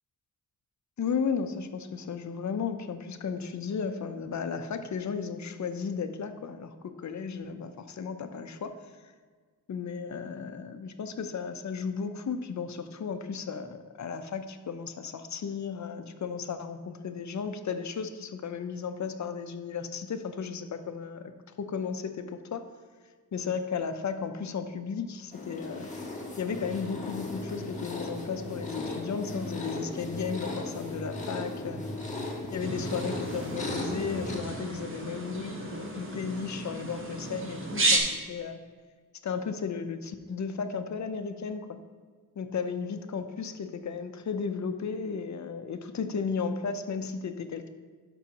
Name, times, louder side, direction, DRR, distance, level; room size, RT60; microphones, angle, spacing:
voice 1, 1.0-8.7 9.7-21.3 21.6-22.6 23.3-25.9 26.4-31.8 32.5-38.6 39.2-41.7 42.4-47.7, left 6 dB, 55° left, 9 dB, 0.6 m, -34 dB
sound 1, 25.3-34.4, left 2 dB, 20° left, 1.5 m, -37 dB
sound 2, 32.6-38.0, right 2 dB, 35° right, 1.1 m, -32 dB
11.5 x 6.1 x 2.9 m, 1.5 s
wide cardioid pair, 115°, 35 cm